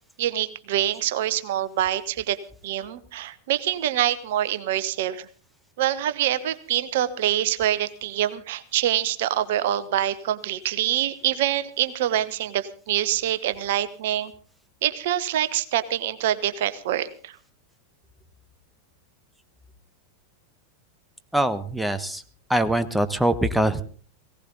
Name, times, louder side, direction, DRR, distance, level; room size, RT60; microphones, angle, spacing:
voice 1, 0.2-2.4 2.6-5.3 5.8-14.3 14.8-17.4, right 12 dB, 55° right, 15 dB, 1.1 m, -25 dB
voice 2, 21.3-22.2 22.5-23.8, right 1 dB, ahead, 11 dB, 1.2 m, -23 dB
19.0 x 17.5 x 4.0 m, 0.41 s
figure-of-eight pair, 90°, 0 cm